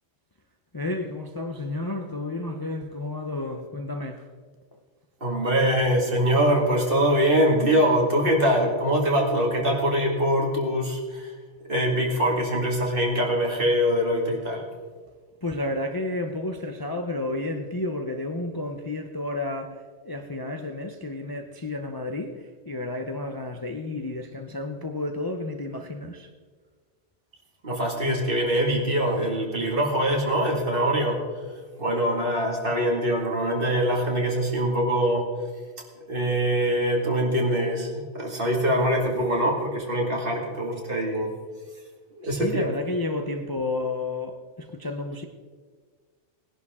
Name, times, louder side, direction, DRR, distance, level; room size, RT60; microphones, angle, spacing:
voice 1, 0.7-4.3 15.4-26.3 42.2-45.3, left 2 dB, 25° left, 4 dB, 0.6 m, -31 dB
voice 2, 5.2-11.3 11.7-14.6 27.6-31.2 31.8-35.3 36.1-41.3 42.2-42.7, equal, 50° right, -1 dB, 2.4 m, -23 dB
19.5 x 11.0 x 3.7 m, 1.5 s
omnidirectional pair, 1.2 m